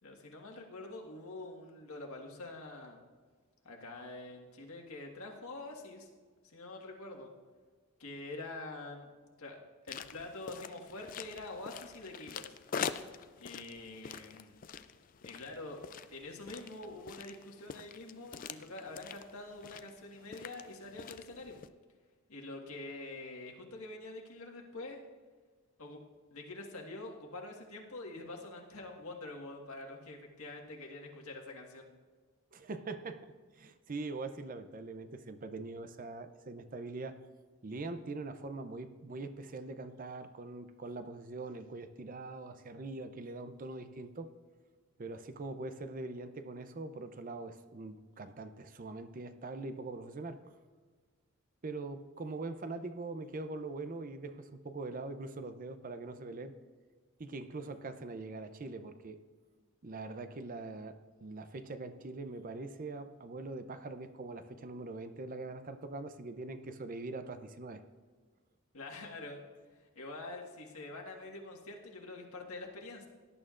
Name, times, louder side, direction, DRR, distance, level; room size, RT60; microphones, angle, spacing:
voice 1, 0.0-3.0 3.6-6.1 6.4-7.3 8.0-9.1 9.4-9.6 9.9-12.5 13.4-14.5 15.2-15.8 16.1-21.6 22.3-25.0 25.8-26.0 26.3-31.9 68.7-69.4 69.9-73.1, left 2 dB, 75° left, 1 dB, 1.6 m, -46 dB
sound 1, 9.9-21.7, left 7 dB, 40° left, 0.3 m, -45 dB
voice 2, 32.5-37.2 37.6-44.3 45.0-50.4 51.6-56.5 57.2-59.2 59.8-67.8, right 3 dB, 40° right, 10 dB, 0.5 m, -43 dB
17.5 x 11.0 x 2.5 m, 1.5 s
head